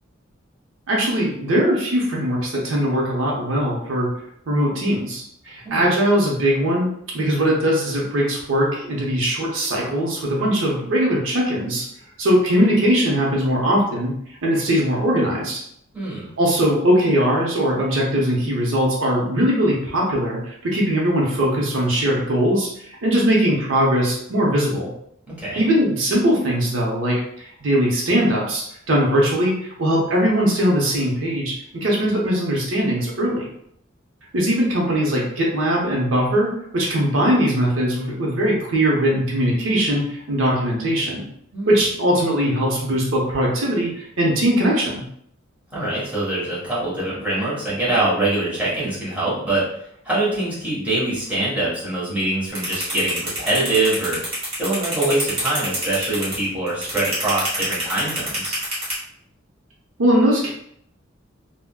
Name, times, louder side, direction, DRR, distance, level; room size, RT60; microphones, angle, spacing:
voice 1, 0.9-4.1 4.5-11.8 12.2-14.1 14.4-15.6 16.4-22.7 23.0-24.9 25.6-33.5 34.3-41.2 41.7-45.0 60.0-60.5, equal, 80° right, -3 dB, 0.7 m, -20 dB
voice 2, 15.9-16.3 25.4-25.7 41.5-41.9 45.7-49.7 50.0-54.2 54.6-58.5, right 2 dB, 10° right, -8 dB, 1.2 m, -24 dB
sound 1, 52.6-58.9, right 1 dB, 30° right, 1.4 m, -26 dB
3.5 x 2.1 x 2.2 m, 0.70 s
head